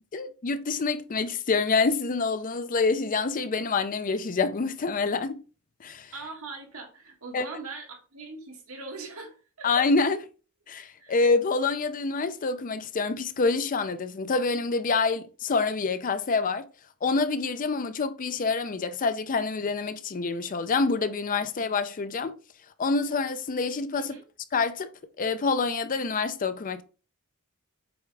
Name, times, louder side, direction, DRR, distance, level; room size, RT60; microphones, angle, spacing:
voice 1, 0.1-5.4 5.8-6.1 7.3-7.5 9.6-10.3 10.7-16.6 17.0-22.3 22.8-24.2 24.5-24.9 25.2-26.8, left 4 dB, 40° left, 0.5 m, -27 dB
voice 2, 6.1-9.7 11.0-11.2 24.0-24.2, right 3 dB, 75° right, 1.9 m, -41 dB
7.8 x 3.6 x 3.3 m
head